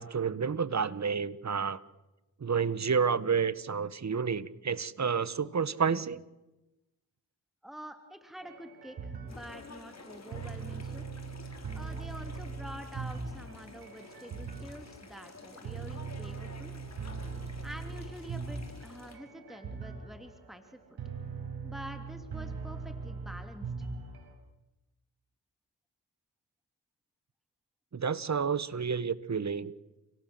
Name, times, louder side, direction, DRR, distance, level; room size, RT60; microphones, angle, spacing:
voice 1, 0.0-1.8 2.4-6.2 27.9-29.7, right 6 dB, 45° right, 16 dB, 1.6 m, -30 dB
voice 2, 7.6-11.1 11.7-16.7 17.6-21.0 21.6-23.9, equal, ahead, 6 dB, 3.2 m, -47 dB
sound 1, 8.4-24.3, right 4 dB, 75° right, 5.3 m, -41 dB
sound 2, 9.3-19.2, left 3 dB, 45° left, 5.7 m, -51 dB
29.5 x 17.5 x 8.0 m, 1.0 s
supercardioid pair, 40°, 38 cm